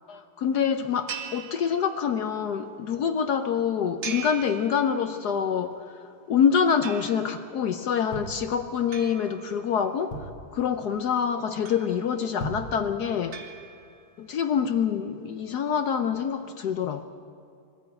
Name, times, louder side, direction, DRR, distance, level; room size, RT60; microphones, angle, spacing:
voice 1, 0.1-6.0 6.3-10.2 10.5-13.4 14.2-17.0, left 7 dB, 65° left, 1.1 m, -26 dB
sound 1, 1.1-2.3 4.0-5.3 6.8-7.5 8.9-10.1 11.7-12.4 13.3-14.2, right 7 dB, 65° right, 2.2 m, -41 dB
sound 2, 7.8-9.1 9.6-9.7 9.8-10.6 11.1-11.3 11.6-11.7 12.2-12.8 13.3-13.4, equal, 80° left, 2.9 m, -37 dB
21.0 x 14.0 x 8.8 m
omnidirectional pair, 2.3 m